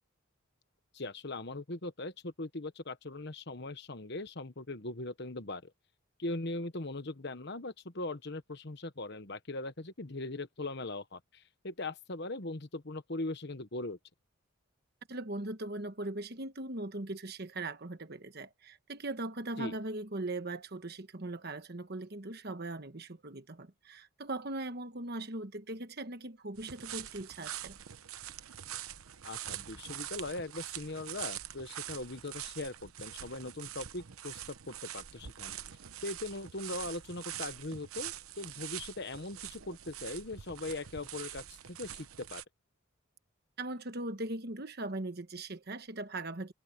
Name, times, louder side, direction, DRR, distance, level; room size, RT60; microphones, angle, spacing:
voice 1, 0.9-5.7 6.2-14.0 19.6-19.7 29.2-35.6 36.0-42.4, left 2 dB, 50° left, 1.3 m, -40 dB
voice 2, 15.1-27.8 43.6-46.5, right 2 dB, 50° right, 1.3 m, -39 dB
sound 1, 26.6-42.4, right 11 dB, 85° right, 0.9 m, -44 dB
head